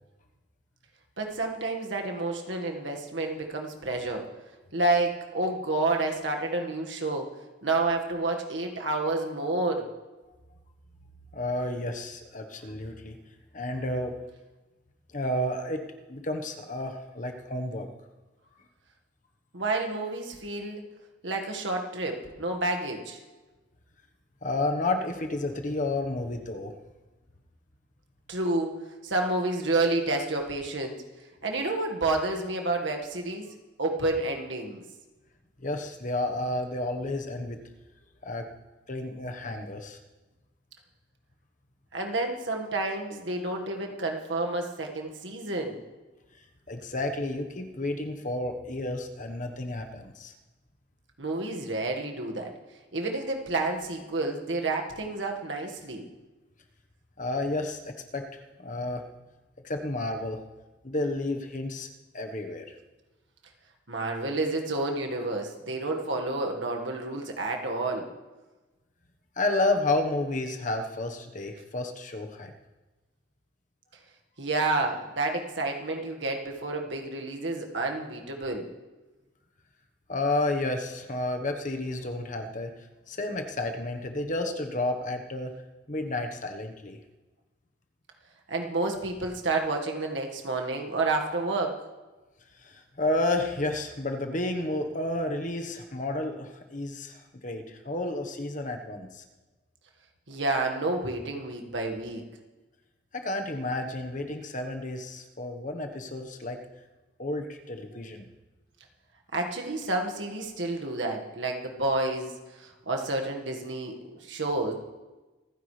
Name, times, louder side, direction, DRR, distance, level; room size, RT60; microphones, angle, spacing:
voice 1, 1.2-4.3 4.7-7.3 7.6-9.8 19.5-20.8 21.2-23.2 28.3-28.7 29.0-31.0 31.4-33.5 33.8-34.8 41.9-45.8 51.2-52.5 52.9-56.1 63.9-68.1 74.4-78.7 88.5-91.8 100.3-102.2 109.3-112.3 112.6-113.9 114.2-114.7, right 2 dB, 90° right, 2 dB, 1.8 m, -29 dB
voice 2, 11.3-13.2 13.5-14.2 15.1-17.9 24.4-26.8 35.6-37.6 38.2-38.5 38.9-40.0 46.7-50.3 57.2-59.1 59.6-60.4 60.8-61.9 62.1-62.7 69.4-72.5 80.1-82.7 83.1-85.5 85.9-87.0 92.6-99.2 103.1-106.6 107.2-108.3, left 2 dB, 45° left, 5 dB, 1.3 m, -31 dB
26.0 x 10.0 x 3.4 m, 1.2 s
head